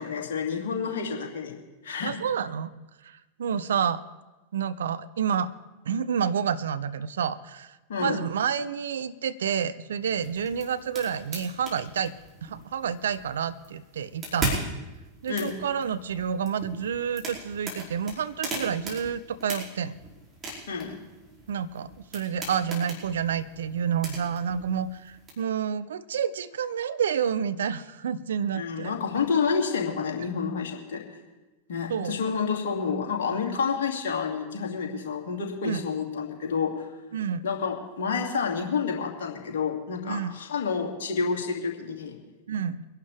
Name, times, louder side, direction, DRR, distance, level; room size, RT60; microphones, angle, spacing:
voice 1, 0.0-1.5 1.8-2.2 7.9-8.2 15.3-15.6 20.7-21.0 28.5-31.0 31.7-36.9 37.4-42.2, left 5 dB, 55° left, 0 dB, 2.5 m, -29 dB
voice 2, 2.0-2.7 3.0-4.0 4.5-5.5 5.8-12.1 12.4-14.6 15.2-20.0 21.5-28.9 31.9-32.2 35.6-35.8 37.1-37.4 40.1-40.3 42.5-42.8, right 7 dB, 65° right, 14 dB, 0.6 m, -29 dB
sound 1, 10.0-25.3, right 1 dB, 20° right, 5.1 m, -39 dB
24.0 x 11.5 x 3.4 m, 1.1 s
figure-of-eight pair, 90°, 0 cm